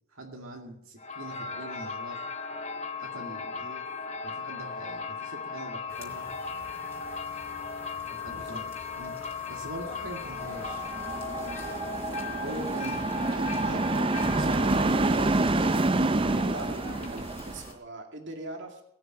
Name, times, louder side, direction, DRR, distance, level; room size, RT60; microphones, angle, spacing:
voice 1, 0.1-2.3 3.0-3.7 4.2-6.3 8.1-8.7 9.0-9.2 9.5-10.9 12.4-13.0 13.3-15.4, right 1 dB, 70° right, 1 dB, 2.2 m, -42 dB
sound 1, 1.0-17.4, left 5 dB, 30° left, 1.4 m, -38 dB
voice 2, 3.6-3.9 8.3-8.6 11.3-11.6 16.2-18.8, right 2 dB, 55° right, 3 dB, 2.4 m, -42 dB
sound 2, 5.9-17.7, left 2 dB, 10° left, 4.3 m, -48 dB
sound 3, 10.3-17.7, right 2 dB, 25° right, 0.5 m, -27 dB
19.5 x 7.0 x 8.7 m, 0.75 s
head